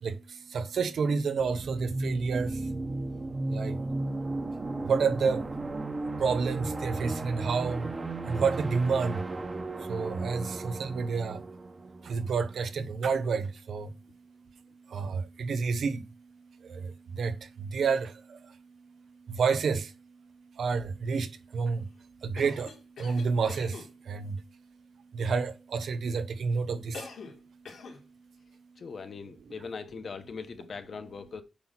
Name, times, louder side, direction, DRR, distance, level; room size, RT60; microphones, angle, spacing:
voice 1, 0.0-2.7 3.5-3.8 4.9-5.5 6.2-7.9 8.3-9.2 9.8-11.4 12.0-13.9 14.9-16.1 16.6-18.6 19.3-19.9 20.6-21.9 22.2-22.7 23.0-24.4 25.1-27.1, right 5 dB, 75° right, 0.9 m, -29 dB
sound 1, 1.4-12.9, right 2 dB, 30° right, 1.1 m, -35 dB
Cough, 22.4-23.9 26.9-27.4 27.7-28.0, left 4 dB, 85° left, 2.7 m, -44 dB
voice 2, 28.8-31.4, left 5 dB, 50° left, 1.1 m, -40 dB
8.6 x 5.8 x 4.1 m
wide cardioid pair, 150°, 0 cm